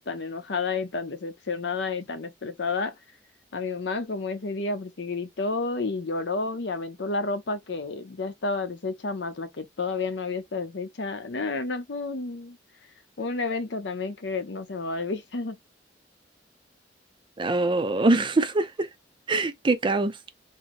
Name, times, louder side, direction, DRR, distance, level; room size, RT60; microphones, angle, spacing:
voice 1, 0.0-2.9 3.5-12.6 13.2-15.6, left 3 dB, 70° left, 0.7 m, -30 dB
voice 2, 17.4-18.9 19.3-20.2, right 2 dB, 25° right, 0.5 m, -23 dB
3.0 x 2.7 x 3.9 m
head